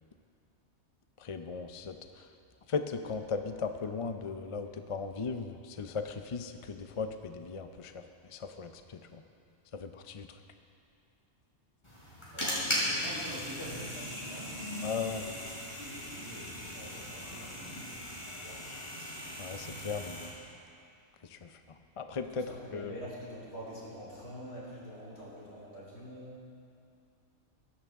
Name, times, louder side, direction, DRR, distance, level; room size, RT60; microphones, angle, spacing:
voice 1, 1.2-2.0 2.7-8.0 8.3-9.2 9.7-10.3 14.8-15.3 19.4-20.3 21.2-21.6 22.0-22.5 22.7-22.9, left 5 dB, 40° left, 7 dB, 0.4 m, -37 dB
sound 1, 11.8-20.3, equal, 25° left, 4.0 m, -38 dB
voice 2, 12.3-18.6 21.7-21.8 22.4-26.3, equal, 60° left, -7 dB, 4.4 m, -46 dB
21.5 x 11.0 x 3.6 m, 2.5 s
omnidirectional pair, 1.3 m